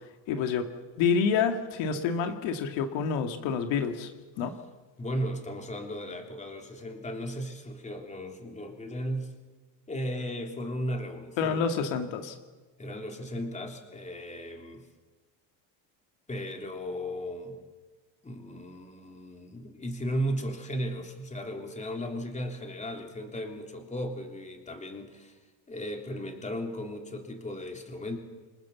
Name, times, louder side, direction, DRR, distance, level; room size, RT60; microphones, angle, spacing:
voice 1, 0.3-0.7 1.0-4.1 4.4-4.5 11.4-12.4, left 6 dB, 80° left, 6 dB, 2.2 m, -28 dB
voice 2, 5.0-9.3 9.9-11.7 12.8-14.9 16.3-17.6 18.2-25.4 25.7-28.2, equal, 15° left, 3 dB, 3.3 m, -36 dB
28.0 x 22.0 x 7.3 m, 1.3 s
cardioid pair, 140°, 45 cm